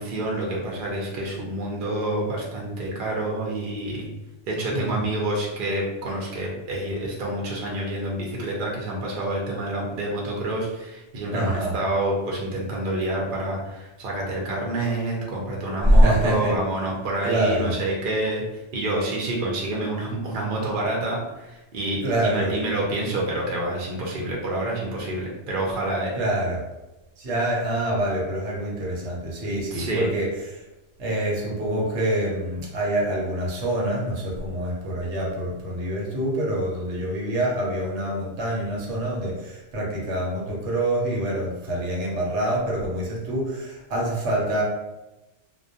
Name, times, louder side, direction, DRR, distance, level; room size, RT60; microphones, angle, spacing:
voice 1, 0.0-4.1 4.5-18.4 18.7-26.1 29.7-30.1, right 1 dB, 55° right, -2 dB, 0.7 m, -28 dB
voice 2, 4.7-5.0 11.3-11.7 15.8-16.6 17.2-17.7 22.0-22.5 26.2-26.6 27.2-30.6 31.0-44.6, right 1 dB, 80° right, -3 dB, 1.0 m, -25 dB
2.2 x 2.2 x 2.6 m, 1.0 s
omnidirectional pair, 1.2 m